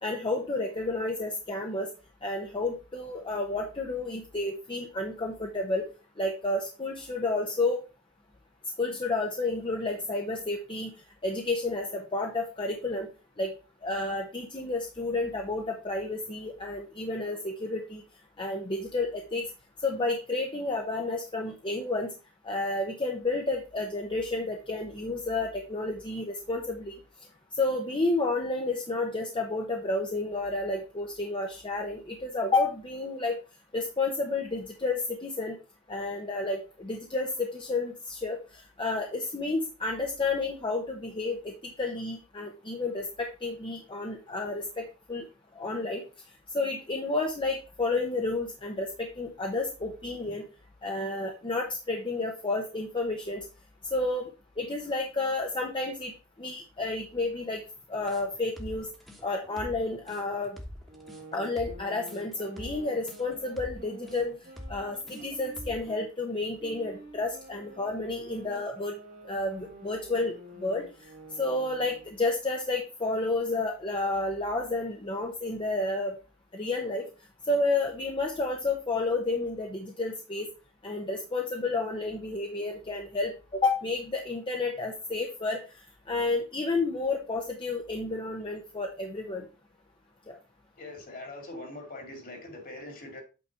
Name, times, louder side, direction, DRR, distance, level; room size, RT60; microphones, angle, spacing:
voice 1, 0.0-1.9 2.2-5.9 6.2-7.8 8.8-10.9 11.2-13.1 13.4-13.5 13.8-18.0 18.4-19.5 19.8-22.1 22.4-26.9 27.5-33.4 33.7-35.6 35.9-45.3 45.6-46.0 46.5-50.4 50.8-53.4 53.9-54.3 54.6-56.1 56.4-57.6 57.9-58.9 59.2-60.6 61.3-64.3 64.7-68.9 69.3-71.1 71.4-76.2 76.5-77.0 77.4-80.5 80.8-85.6 86.1-89.4 90.3-90.4, left 2 dB, 25° left, 1 dB, 0.9 m, -31 dB
sound 1, 58.1-65.9, left 1 dB, ahead, 1.3 m, -44 dB
sound 2, 60.9-66.1 66.6-72.2, right 2 dB, 40° right, 1.4 m, -49 dB
voice 2, 90.8-93.2, left 2 dB, 40° left, 3 dB, 2.2 m, -42 dB
8.5 x 4.1 x 4.4 m, 0.31 s
head